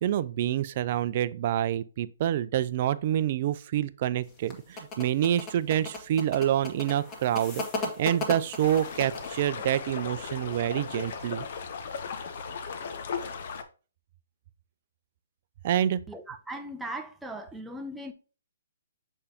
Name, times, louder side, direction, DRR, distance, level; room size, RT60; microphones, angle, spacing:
voice 1, 0.0-7.6 8.0-11.4 15.6-16.0, right 11 dB, 45° right, 0.4 m, -27 dB
sound 1, 4.3-9.4, left 2 dB, 25° left, 1.6 m, -36 dB
sound 2, 8.6-13.6, left 6 dB, 55° left, 0.9 m, -37 dB
voice 2, 16.1-18.1, right 1 dB, 5° right, 0.7 m, -38 dB
6.7 x 5.4 x 2.8 m
hypercardioid pair, 140°, 0 cm